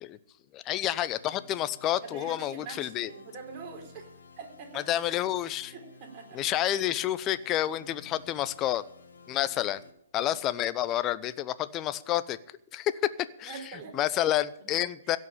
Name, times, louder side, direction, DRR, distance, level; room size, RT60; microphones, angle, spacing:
voice 1, 0.5-3.1 4.9-5.7 6.3-8.8 9.3-9.8 10.1-12.4 12.7-12.9 13.4-13.5 13.9-15.2, left 13 dB, 25° left, 15 dB, 0.8 m, -29 dB
sound 1, 1.2-9.9, left 5 dB, 70° left, 2.0 m, -54 dB
voice 2, 2.0-4.9 5.7-6.4 6.8-6.9 13.4-14.0 14.7-14.8 15.0-15.2, right 5 dB, 30° right, 1 dB, 4.2 m, -44 dB
16.5 x 6.6 x 8.9 m, 0.75 s
figure-of-eight pair, 125°, 0 cm